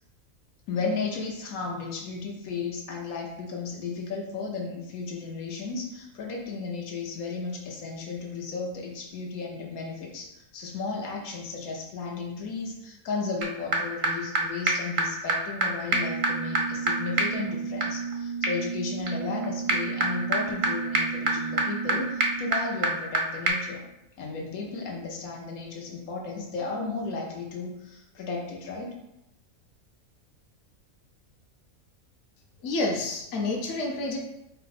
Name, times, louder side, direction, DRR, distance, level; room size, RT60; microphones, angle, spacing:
voice 1, 0.7-23.8 24.2-29.0, left 4 dB, 85° left, -1 dB, 1.3 m, -34 dB
sound 1, 13.4-13.5 13.7-13.8 14.0-14.1 14.4-14.5 14.7-14.8 15.0-15.1 15.3-15.4 15.6-15.7 15.9-23.2 23.5-23.6, right 3 dB, 55° right, 0.6 m, -27 dB
voice 2, 32.6-34.2, left 2 dB, 65° left, 0 dB, 1.0 m, -29 dB
4.5 x 2.2 x 4.0 m, 0.85 s
omnidirectional pair, 1.5 m